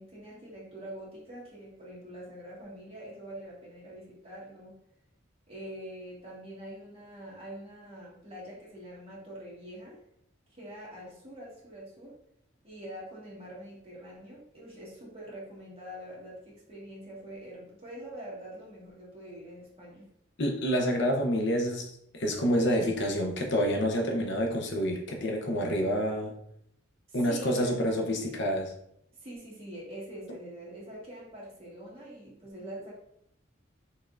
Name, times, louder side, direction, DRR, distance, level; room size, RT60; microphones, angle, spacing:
voice 1, 0.0-4.8 5.5-10.0 10.5-12.2 12.6-20.1 27.1-27.8 29.2-32.9, right 1 dB, 30° right, -6 dB, 1.7 m, -44 dB
voice 2, 20.4-26.3 27.1-28.7, equal, 60° left, 2 dB, 0.7 m, -28 dB
5.5 x 3.5 x 2.5 m, 0.73 s
head